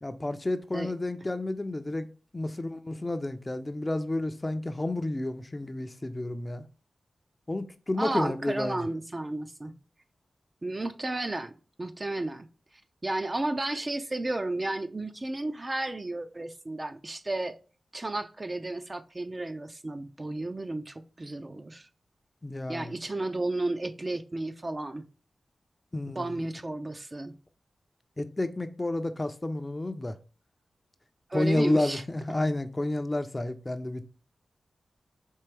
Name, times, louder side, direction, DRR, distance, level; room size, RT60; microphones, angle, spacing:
voice 1, 0.0-2.1 2.3-6.6 7.5-8.9 22.4-23.0 25.9-26.4 28.2-30.2 31.3-34.0, left 2 dB, 25° left, 0.5 m, -30 dB
voice 2, 8.0-9.7 10.6-12.5 13.0-17.6 17.9-21.9 22.7-25.1 26.1-27.4 31.3-32.0, right 2 dB, 30° right, 0.5 m, -33 dB
4.5 x 3.3 x 3.2 m
cardioid pair, 60°, 0 cm